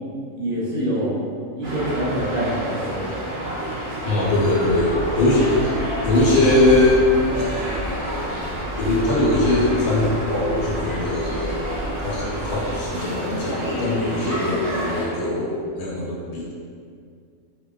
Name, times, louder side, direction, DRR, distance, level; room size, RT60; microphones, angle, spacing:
voice 1, 0.4-1.2 1.5-3.1, right 1 dB, 75° right, -5 dB, 1.0 m, -25 dB
sound 1, 1.6-15.1, equal, 45° right, 0.4 m, -29 dB
voice 2, 4.0-5.8 6.0-7.0 8.8-11.6 12.0-16.5, left 2 dB, 85° left, -4 dB, 1.1 m, -21 dB
sound 2, 4.7-12.9, equal, 45° left, 0.7 m, -33 dB
2.5 x 2.1 x 2.3 m, 2.2 s
omnidirectional pair, 1.5 m